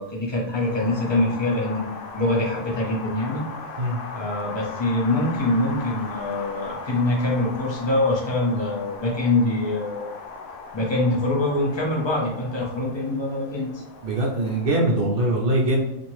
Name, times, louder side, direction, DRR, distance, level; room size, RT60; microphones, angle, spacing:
voice 1, 0.0-3.4 4.1-10.1 10.7-13.8, left 2 dB, 25° left, -4 dB, 0.6 m, -24 dB
Wind, 0.6-14.7, left 4 dB, 75° left, 0.9 m, -38 dB
voice 2, 14.0-15.8, right 1 dB, 55° right, -1 dB, 0.7 m, -22 dB
2.8 x 2.6 x 2.9 m, 0.90 s
omnidirectional pair, 1.3 m